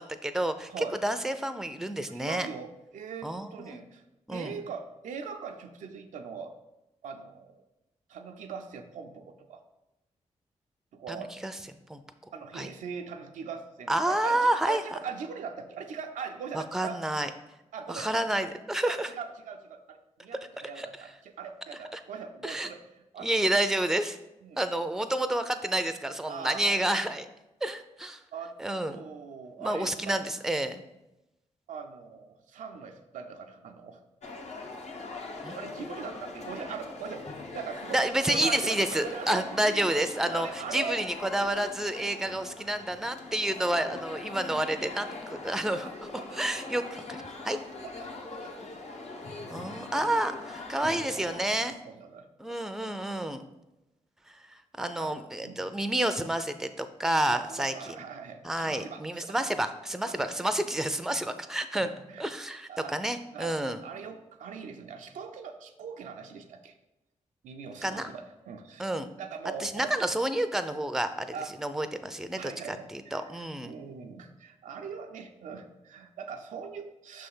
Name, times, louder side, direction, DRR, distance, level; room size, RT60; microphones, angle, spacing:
voice 1, 0.0-2.5 3.2-3.8 4.3-4.6 11.1-11.5 11.9-12.0 12.5-12.7 13.9-14.8 16.5-17.3 17.9-19.1 20.8-20.9 21.9-22.0 22.4-22.7 23.2-24.2 24.6-27.3 27.6-28.2 28.6-29.0 29.6-30.8 35.4-35.6 37.9-45.9 46.3-47.6 49.5-51.7 52.4-53.4 54.3-58.0 58.4-61.9 62.2-63.8 67.8-68.1 68.8-69.1 69.6-73.8, right 1 dB, 5° right, 9 dB, 0.5 m, -29 dB
voice 2, 0.7-1.0 2.1-4.0 4.3-6.5 7.0-7.6 8.1-9.6 10.9-11.3 12.3-17.1 17.7-18.3 18.9-22.8 23.1-23.3 24.4-24.6 26.3-26.8 28.3-28.5 28.9-30.2 31.7-34.0 35.6-39.9 40.2-41.0 43.6-43.7 45.8-46.4 47.8-48.7 49.3-49.8 51.0-52.6 54.8-55.6 57.3-59.4 60.1-60.3 61.7-62.3 62.7-66.8 67.4-68.9 69.2-69.9 71.3-71.5 72.4-77.3, right 6 dB, 85° right, 5 dB, 0.6 m, -41 dB
sound 1, 34.2-51.5, left 3 dB, 60° left, 1.0 m, -42 dB
5.7 x 3.4 x 5.5 m, 0.94 s
cardioid pair, 55°, 13 cm